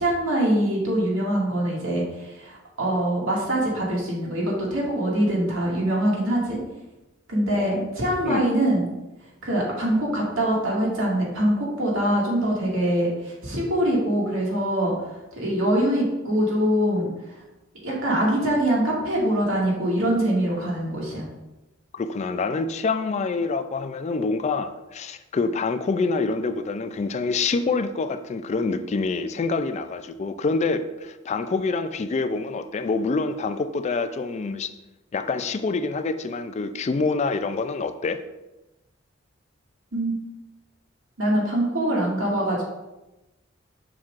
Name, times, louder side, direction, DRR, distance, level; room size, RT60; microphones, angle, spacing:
voice 1, 0.0-6.6 7.3-8.8 9.4-14.9 15.3-17.1 17.8-21.3 39.9-40.2 41.2-42.6, right 1 dB, 80° right, -4 dB, 2.1 m, -23 dB
voice 2, 7.5-7.9 8.2-8.4 21.9-34.7 35.1-38.2, left 4 dB, 35° left, 10 dB, 0.3 m, -26 dB
7.2 x 5.9 x 2.5 m, 1.0 s
head